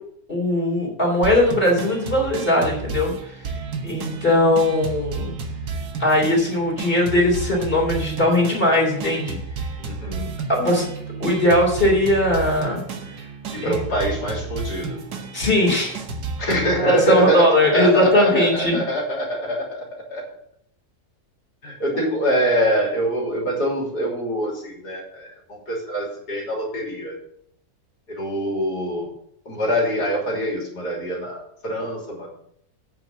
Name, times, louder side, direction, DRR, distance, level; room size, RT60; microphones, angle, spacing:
voice 1, 0.3-3.1 3.8-5.3 6.0-9.4 10.5-10.9 11.2-12.8 13.6-13.7 15.3-16.0 16.4-16.5 16.8-18.8, left 1 dB, 35° left, -1 dB, 3.6 m, -19 dB
sound 1, 1.2-16.8, right 4 dB, 85° right, 1.7 m, -32 dB
voice 2, 9.8-10.3 13.5-15.0 16.4-20.2 21.6-27.2 28.1-29.1 29.5-32.3, equal, 85° left, -2 dB, 3.7 m, -24 dB
9.1 x 6.0 x 7.2 m, 0.70 s
omnidirectional pair, 1.7 m